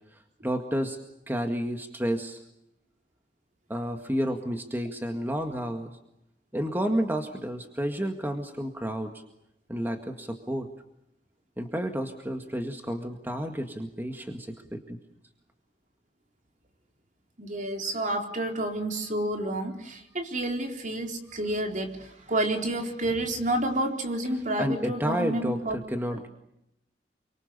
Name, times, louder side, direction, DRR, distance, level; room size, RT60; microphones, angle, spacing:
voice 1, 0.4-1.0 1.3-2.4 3.7-5.9 6.5-9.1 9.7-10.7 11.6-15.0 24.6-26.3, equal, 10° right, 5 dB, 1.9 m, -30 dB
voice 2, 17.4-25.8 26.1-26.2, right 1 dB, 45° right, 4 dB, 4.1 m, -30 dB
28.5 x 25.0 x 6.9 m, 0.85 s
head